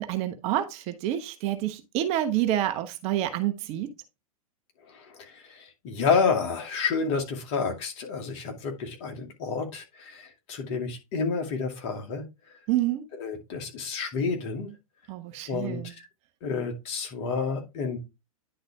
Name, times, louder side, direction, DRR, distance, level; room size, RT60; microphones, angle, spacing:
voice 1, 0.0-3.9 12.7-13.0 15.1-15.9, right 12 dB, 35° right, 1.0 m, -28 dB
voice 2, 5.1-12.2 13.2-14.7 15.5-16.0 16.4-18.0, left 5 dB, 40° left, 2.4 m, -29 dB
10.0 x 4.1 x 3.5 m
figure-of-eight pair, 105°, 18 cm